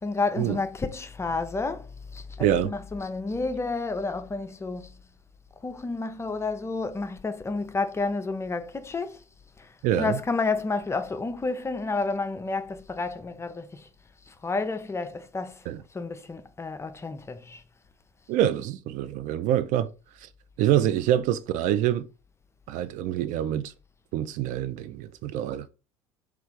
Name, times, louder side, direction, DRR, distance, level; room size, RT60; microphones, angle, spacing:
voice 1, 0.0-4.9 5.6-9.2 9.6-13.9 14.3-15.7 15.9-17.6, left 3 dB, 15° left, 0.5 m, -30 dB
voice 2, 2.4-2.7 9.8-10.2 15.7-15.8 18.3-19.9 20.6-22.1 22.7-23.7 24.1-25.7, right 11 dB, 50° right, 0.4 m, -25 dB
3.4 x 2.4 x 4.3 m
hypercardioid pair, 70°, 17 cm